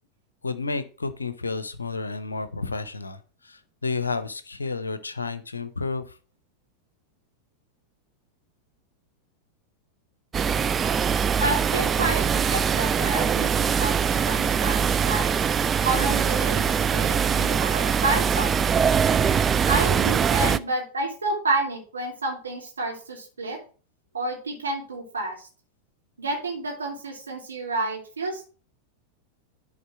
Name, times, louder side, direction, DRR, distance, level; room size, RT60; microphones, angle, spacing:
voice 1, 0.4-6.2, left 4 dB, 75° left, 13 dB, 0.7 m, -31 dB
sound 1, 10.3-20.6, right 7 dB, 20° right, 0.3 m, -22 dB
voice 2, 11.4-15.3 15.8-18.8 19.7-23.6 24.1-25.5 26.2-28.4, right 2 dB, 75° right, 0 dB, 2.6 m, -29 dB
11.0 x 3.9 x 4.5 m, 0.38 s
figure-of-eight pair, 90°, 0 cm